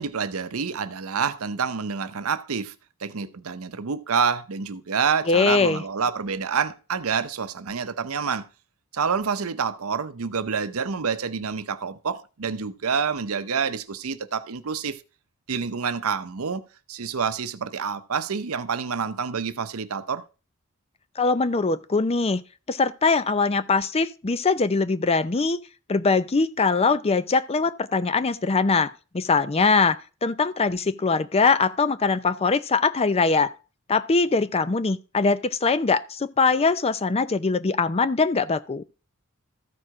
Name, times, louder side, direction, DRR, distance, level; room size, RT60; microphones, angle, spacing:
voice 1, 0.0-2.7 3.0-8.5 8.9-15.0 15.5-16.6 16.9-20.2, right 6 dB, 75° right, 0.7 m, -28 dB
voice 2, 5.3-5.8 21.2-22.4 22.7-25.6 25.9-33.5 33.9-38.8, left 4 dB, 30° left, 0.5 m, -22 dB
14.0 x 4.7 x 4.8 m
head